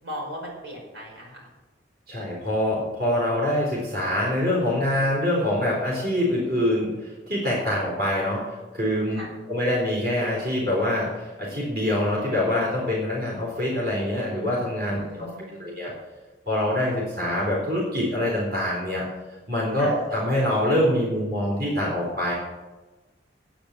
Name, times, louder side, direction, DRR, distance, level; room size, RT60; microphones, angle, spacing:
voice 1, 0.0-1.5 9.1-9.3 14.9-15.7 19.8-19.9, equal, 85° right, -2 dB, 5.5 m, -37 dB
voice 2, 2.1-9.2 9.5-15.3 15.6-15.9 16.5-19.0 19.5-22.3, left 1 dB, 55° right, -4 dB, 4.0 m, -25 dB
10.5 x 9.3 x 7.4 m, 1.2 s
head